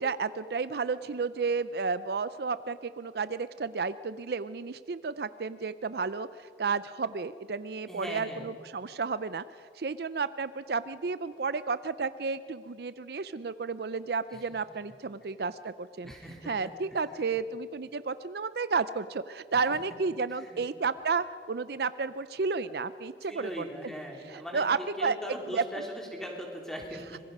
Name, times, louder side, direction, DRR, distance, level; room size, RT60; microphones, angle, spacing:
voice 1, 0.0-9.4 9.7-16.1 16.5-23.6 24.3-25.2 25.5-25.6, right 4 dB, 60° right, 14 dB, 0.5 m, -32 dB
voice 2, 7.9-8.6 14.3-14.4 16.0-16.7 17.1-17.3 19.5-19.6 20.3-20.6 23.3-27.2, equal, 5° left, 0 dB, 3.2 m, -40 dB
26.0 x 22.0 x 5.4 m, 2.5 s
head